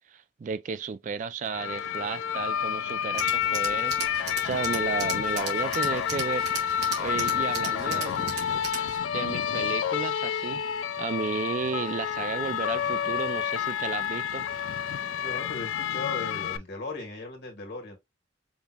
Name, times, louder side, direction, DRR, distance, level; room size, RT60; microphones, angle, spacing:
voice 1, 0.0-8.1 9.1-14.5, right 5 dB, 40° right, 0.3 m, -33 dB
sound 1, 1.5-16.6, left 9 dB, 90° left, 0.3 m, -29 dB
Tools, 3.1-9.0, right 4 dB, 60° right, 1.6 m, -37 dB
sound 2, 5.7-15.7, left 4 dB, 5° left, 1.3 m, -43 dB
voice 2, 7.7-8.6 15.2-18.0, left 3 dB, 60° left, 1.7 m, -38 dB
5.3 x 2.8 x 2.3 m
head